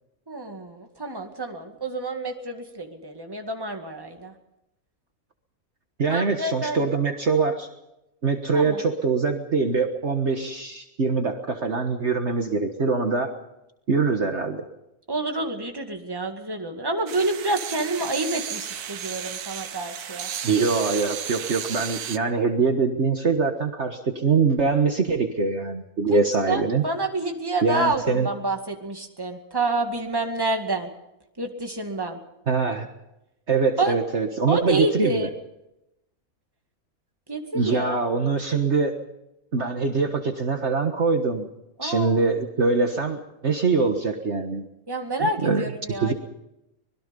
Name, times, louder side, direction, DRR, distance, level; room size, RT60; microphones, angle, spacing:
voice 1, 0.3-4.3 6.1-6.8 8.5-8.8 15.1-20.3 26.1-26.2 26.5-30.9 31.4-32.2 33.8-34.0 34.5-35.3 37.3-38.0 41.8-42.2 44.9-46.1, right 2 dB, 15° right, 4 dB, 2.2 m, -28 dB
voice 2, 6.0-7.7 8.2-13.4 13.9-14.7 20.4-26.8 27.6-28.3 32.5-32.9 33.5-35.3 37.5-39.0 39.5-41.5 41.8-44.7 45.2-45.6 46.0-46.1, right 4 dB, 50° right, 5 dB, 1.7 m, -23 dB
sound 1, 17.1-22.2, right 9 dB, 90° right, 1.4 m, -34 dB
25.0 x 21.0 x 5.4 m, 0.90 s
omnidirectional pair, 1.6 m